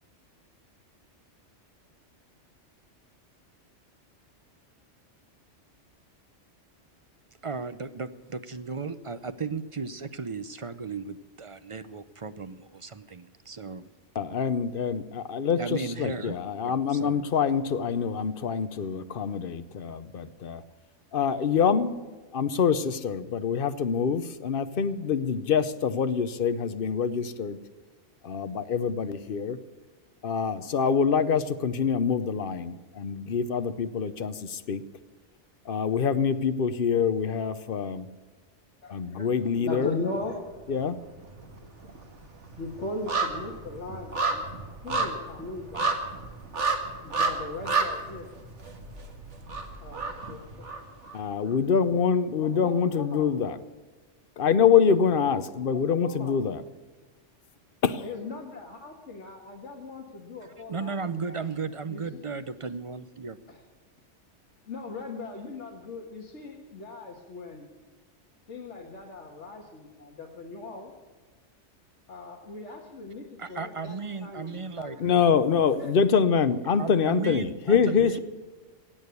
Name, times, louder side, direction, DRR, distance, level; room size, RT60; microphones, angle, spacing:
voice 1, 7.4-13.8 15.6-16.4 16.6-17.3 60.7-63.4 73.4-75.1 76.8-78.2, right 4 dB, 40° right, 12 dB, 0.5 m, -35 dB
voice 2, 14.2-20.6 21.1-21.9 22.3-27.6 28.2-29.6 30.2-34.8 35.7-38.1 38.9-39.9 40.7-41.0 51.1-53.6 54.4-56.6 57.8-58.0 75.0-78.2, left 6 dB, 50° left, 12 dB, 0.9 m, -25 dB
voice 3, 38.8-40.4 41.6-41.8 42.6-45.9 47.0-48.4 49.8-50.6 52.4-53.4 55.7-56.5 58.0-61.4 61.9-62.3 63.5-63.6 64.6-67.7 68.5-70.9 72.1-75.0 75.6-76.0, left 3 dB, 75° left, -1 dB, 1.9 m, -39 dB
sound 1, 40.1-40.9 41.2-51.2 51.5-51.6, right 3 dB, 75° right, 2.0 m, -31 dB
16.0 x 8.7 x 8.2 m, 1.4 s
omnidirectional pair, 1.2 m